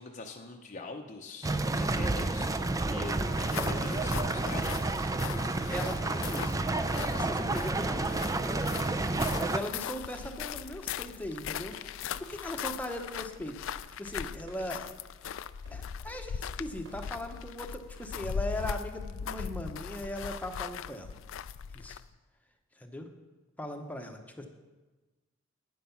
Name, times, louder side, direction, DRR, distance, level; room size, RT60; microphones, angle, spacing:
voice 1, 0.0-4.9, left 3 dB, 35° left, 2 dB, 0.7 m, -43 dB
sound 1, 1.4-9.6, right 2 dB, 15° right, 0.4 m, -30 dB
sound 2, 3.3-22.1, left 7 dB, 70° left, 0.3 m, -40 dB
voice 2, 5.7-8.1 9.3-11.8 12.2-14.9 15.7-21.1 21.7-22.0 22.8-23.1 23.6-24.5, left 1 dB, 10° left, 4 dB, 0.9 m, -39 dB
Run, 5.8-17.5, right 1 dB, 75° right, 4.4 m, -57 dB
10.0 x 9.4 x 5.8 m, 1.2 s
head